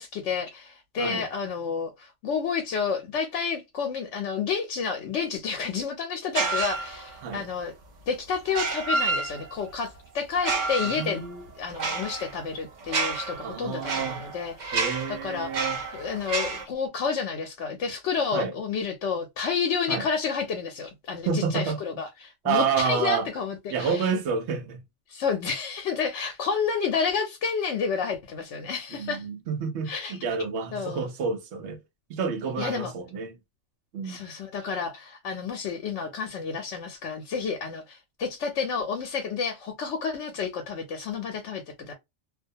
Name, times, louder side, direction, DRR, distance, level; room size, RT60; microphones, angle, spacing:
voice 1, 0.0-7.7 8.1-11.2 11.6-15.7 15.9-24.1 25.1-29.2 29.9-30.2 30.7-31.1 32.6-32.9 34.0-41.9, left 6 dB, 80° left, 0.9 m, -30 dB
sound 1, 6.3-7.3 8.5-9.7 10.3-16.6, right 3 dB, 50° right, 0.6 m, -30 dB
voice 2, 10.9-11.4 13.4-14.2 14.7-15.8 18.3-18.5 19.9-20.0 21.3-21.8 22.4-23.3 23.7-24.8 29.0-31.8 32.1-33.4 33.9-34.2, right 5 dB, 75° right, 0.9 m, -29 dB
2.3 x 2.2 x 2.6 m
omnidirectional pair, 1.2 m